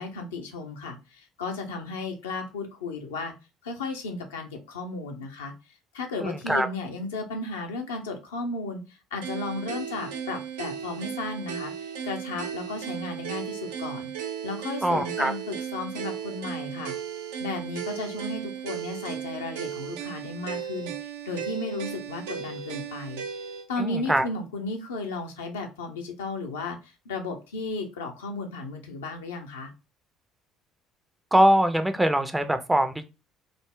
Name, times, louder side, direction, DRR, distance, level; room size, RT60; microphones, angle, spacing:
voice 1, 0.0-3.3 3.6-5.5 5.9-14.1 14.4-16.9 17.4-23.2 23.7-29.7, left 3 dB, 75° left, 3 dB, 0.5 m, -34 dB
voice 2, 6.2-6.7 14.8-15.3 23.8-24.3 31.3-33.0, right 1 dB, 10° right, 9 dB, 0.4 m, -22 dB
sound 1, 9.2-23.7, right 8 dB, 70° right, 0.4 m, -35 dB
3.7 x 2.0 x 3.2 m, 0.28 s
figure-of-eight pair, 55°, 0 cm